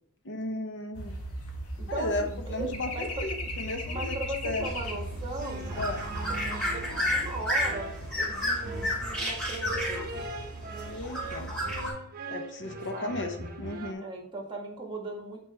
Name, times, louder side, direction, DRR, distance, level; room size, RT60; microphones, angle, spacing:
voice 1, 0.2-1.2 1.9-4.2 4.4-4.7 5.8-6.1 10.9-11.5 12.3-14.1, left 2 dB, 55° left, 5 dB, 0.8 m, -35 dB
sound 1, 0.9-9.5 9.7-10.0, equal, 80° left, 1.6 m, -38 dB
voice 2, 1.8-3.1 3.8-5.7 6.4-7.9 8.1-10.1 12.9-13.2 14.0-15.4, right 2 dB, 25° right, 0 dB, 1.8 m, -38 dB
sound 2, 4.6-11.9, equal, 5° left, 2.9 m, -32 dB
sound 3, 5.4-13.9, right 2 dB, 40° right, 0.9 m, -40 dB
8.5 x 4.7 x 3.5 m, 0.72 s
head